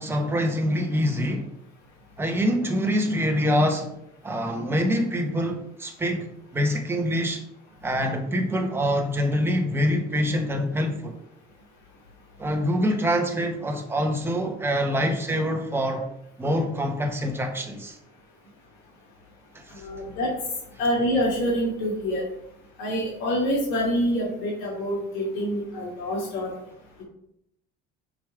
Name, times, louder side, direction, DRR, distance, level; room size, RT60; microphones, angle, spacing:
voice 1, 0.0-1.5 2.2-3.9 4.2-7.4 7.8-11.1 12.4-16.1 16.4-18.0 19.5-19.9, equal, 10° right, 1.1 m, -25 dB
voice 2, 19.7-20.3 20.8-22.2 22.8-26.5, equal, 70° left, 2.4 m, -26 dB
5.1 x 5.1 x 4.8 m
cardioid pair, 130°, 20 cm